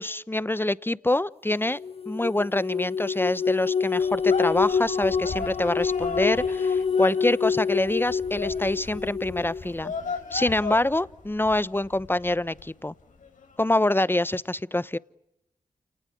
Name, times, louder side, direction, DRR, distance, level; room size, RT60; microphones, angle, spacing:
voice 1, 0.0-1.8 2.1-9.9 10.3-12.9 13.6-15.0, left 1 dB, 15° left, 1.0 m, -25 dB
sound 1, 1.8-9.6, left 6 dB, 45° left, 1.4 m, -27 dB
sound 2, 4.0-12.7 13.1-13.8, left 5 dB, 70° left, 3.7 m, -37 dB
29.0 x 19.0 x 9.7 m
cardioid pair, 40°, 14 cm